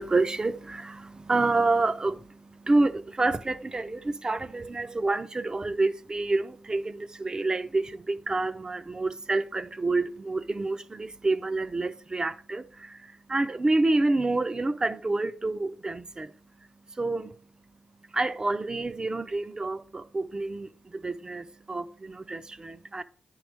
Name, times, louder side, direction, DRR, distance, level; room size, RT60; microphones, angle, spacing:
voice 1, 0.0-23.0, right 2 dB, 35° right, 0.8 m, -28 dB
10.0 x 4.8 x 6.4 m
cardioid pair, 60°, 2 cm